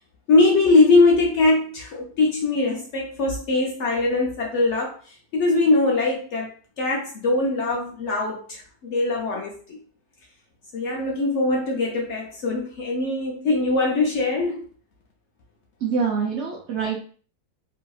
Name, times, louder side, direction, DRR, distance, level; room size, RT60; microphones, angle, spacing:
voice 1, 0.3-4.9 5.3-6.5 6.8-9.8 10.7-14.6, left 3 dB, 65° left, -1 dB, 0.7 m, -21 dB
voice 2, 15.8-17.0, right 5 dB, 70° right, -2 dB, 0.6 m, -25 dB
3.0 x 2.7 x 2.3 m, 0.42 s
omnidirectional pair, 1.7 m